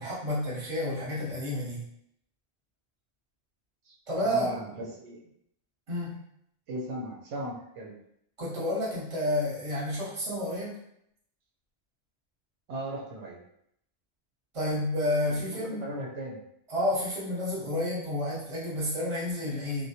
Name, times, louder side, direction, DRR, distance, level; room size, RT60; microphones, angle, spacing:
voice 1, 0.0-1.8 4.1-4.5 5.9-6.2 8.4-10.7 14.5-15.8 16.7-19.9, left 1 dB, 35° right, -6 dB, 0.8 m, -30 dB
voice 2, 4.2-5.2 6.7-7.9 12.7-13.4 15.3-16.4, right 1 dB, 80° right, -2 dB, 0.9 m, -37 dB
2.2 x 2.1 x 2.7 m, 0.74 s
omnidirectional pair, 1.1 m